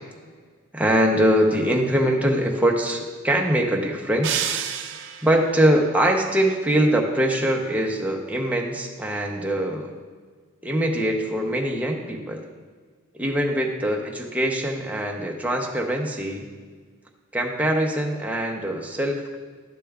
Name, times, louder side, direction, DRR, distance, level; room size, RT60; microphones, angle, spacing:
voice 1, 0.7-4.5 5.2-9.9 10.6-12.5 13.2-16.5 17.3-19.4, right 1 dB, 5° right, 0 dB, 0.7 m, -23 dB
sound 1, 4.2-5.5, right 8 dB, 60° right, 0.5 m, -28 dB
12.0 x 6.8 x 2.4 m, 1.5 s
head